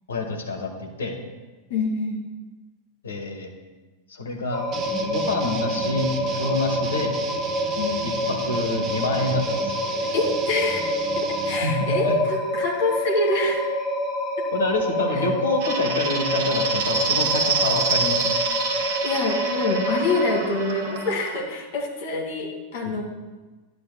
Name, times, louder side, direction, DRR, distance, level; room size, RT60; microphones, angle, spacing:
voice 1, 0.1-1.2 3.0-3.5 4.1-4.6 5.1-7.2 8.0-9.8 11.6-12.1 14.5-18.4, left 3 dB, 70° left, 2 dB, 1.5 m, -27 dB
voice 2, 1.7-2.2 7.8-8.1 10.0-13.7 15.1-15.3 19.0-23.0, left 2 dB, 50° left, 0 dB, 2.1 m, -26 dB
sound 1, 4.5-20.4, equal, 10° left, 2.0 m, -27 dB
sound 2, 4.7-11.6, right 5 dB, 30° right, 0.9 m, -34 dB
sound 3, 15.6-21.4, right 5 dB, 50° right, 1.2 m, -27 dB
11.5 x 9.5 x 2.2 m, 1.3 s
figure-of-eight pair, 90°, 0 cm